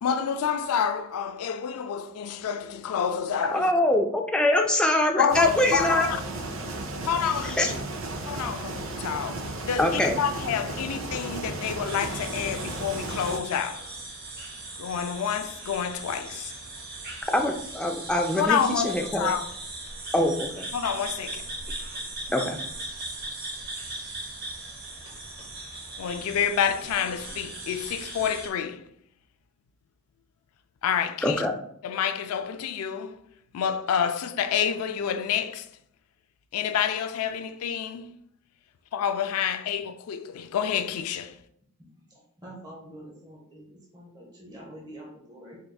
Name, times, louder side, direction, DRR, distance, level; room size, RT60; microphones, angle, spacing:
voice 1, 0.0-3.7 5.2-6.2 7.0-7.8 8.3-13.9 14.8-16.5 18.4-19.4 20.7-21.5 26.0-28.8 30.8-31.4 31.8-33.2 33.5-35.7 36.5-38.1 38.9-41.3, left 8 dB, 80° left, 0.3 m, -28 dB
voice 2, 3.5-6.1 7.4-7.7 9.8-10.2 17.3-19.3 20.1-20.7 22.3-22.6 31.2-31.5, left 1 dB, 5° left, 0.3 m, -24 dB
sound 1, 5.3-13.4, right 2 dB, 60° right, 0.5 m, -34 dB
sound 2, 11.8-28.5, right 2 dB, 45° right, 1.0 m, -39 dB
voice 3, 42.1-45.6, right 1 dB, 20° right, 0.9 m, -46 dB
4.7 x 3.3 x 2.3 m
head